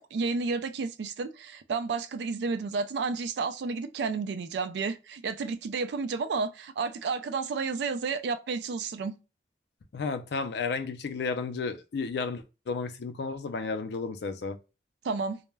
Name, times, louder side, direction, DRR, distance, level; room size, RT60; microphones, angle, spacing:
voice 1, 0.0-9.1 15.0-15.4, right 4 dB, 70° right, 0.3 m, -31 dB
voice 2, 9.9-14.6, left 4 dB, 70° left, 0.4 m, -32 dB
2.2 x 2.0 x 3.2 m
head